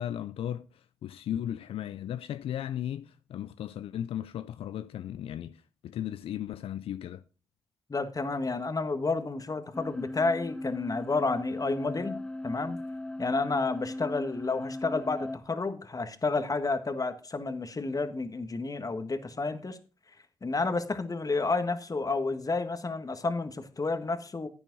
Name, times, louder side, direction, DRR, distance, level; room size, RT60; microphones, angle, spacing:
voice 1, 0.0-7.2, left 10 dB, 85° left, 0.4 m, -36 dB
voice 2, 7.9-12.2 12.4-12.8 13.2-19.8 20.4-24.5, left 3 dB, 40° left, 1.6 m, -30 dB
sound 1, 9.7-15.4, left 1 dB, 10° left, 0.6 m, -38 dB
11.0 x 9.0 x 4.0 m
supercardioid pair, 50°, 9 cm